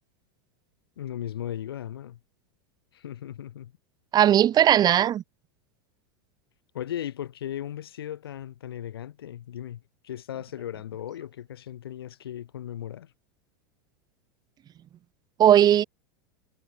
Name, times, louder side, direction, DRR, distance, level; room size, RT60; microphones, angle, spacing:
voice 1, 1.0-2.2 2.9-3.7 6.7-13.1, left 11 dB, 85° left, 2.7 m, -37 dB
voice 2, 4.1-5.2 15.4-15.8, right 11 dB, 35° right, 1.2 m, -18 dB
hypercardioid pair, 105°, 12 cm